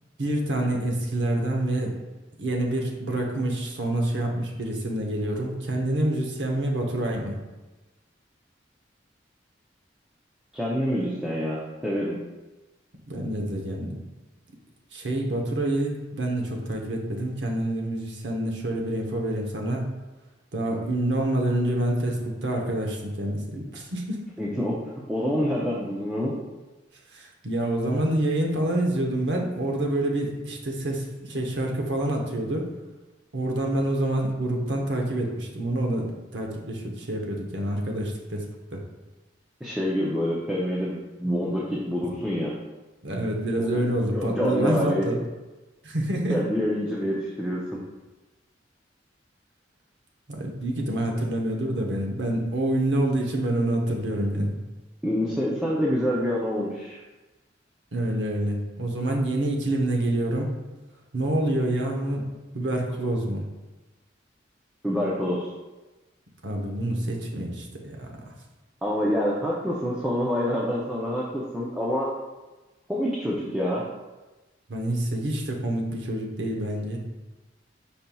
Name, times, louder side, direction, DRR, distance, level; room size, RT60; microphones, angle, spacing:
voice 1, 0.2-2.0 2.4-7.4 13.1-14.0 14.9-19.9 20.5-24.2 27.1-32.7 33.3-38.8 43.0-45.2 45.8-46.4 50.3-54.6 57.9-60.6 61.1-62.3 62.5-63.4 66.4-68.3 74.7-77.0, right 1 dB, 70° right, 1 dB, 0.8 m, -27 dB
voice 2, 10.5-12.2 24.4-24.8 25.1-26.3 39.6-42.5 43.6-43.9 44.1-45.0 46.3-47.8 55.0-57.0 64.8-65.5 68.8-72.1 72.9-73.8, equal, 5° right, -6 dB, 0.5 m, -27 dB
5.2 x 4.3 x 2.3 m, 1.1 s
head